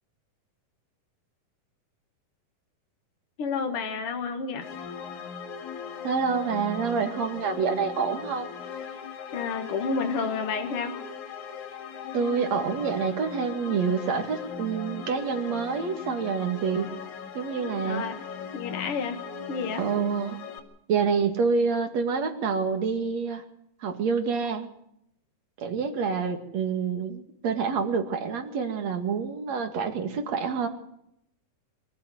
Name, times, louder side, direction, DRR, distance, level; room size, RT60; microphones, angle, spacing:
voice 1, 3.4-4.7 9.3-11.0 17.8-18.2 18.5-19.2 19.5-19.8, left 5 dB, 50° left, 5 dB, 2.2 m, -30 dB
sound 1, 4.6-20.6, left 6 dB, 70° left, 3.5 m, -39 dB
voice 2, 6.0-8.5 12.1-16.9 17.3-18.0 19.8-20.4 20.9-23.4 23.8-24.7 25.6-30.7, right 5 dB, 55° right, 7 dB, 3.2 m, -27 dB
23.5 x 15.0 x 7.8 m, 0.77 s
omnidirectional pair, 3.7 m